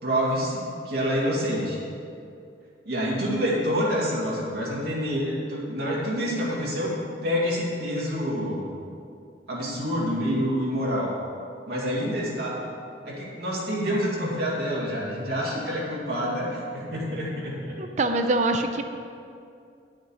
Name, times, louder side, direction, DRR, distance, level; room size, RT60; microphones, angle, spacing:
voice 1, 0.0-1.8 2.8-7.0 7.2-8.7 9.5-11.1 11.7-12.6 13.1-17.8, equal, 60° right, -5 dB, 2.3 m, -27 dB
voice 2, 17.8-18.8, right 2 dB, 40° right, 7 dB, 0.5 m, -24 dB
10.0 x 6.5 x 4.8 m, 2.5 s
head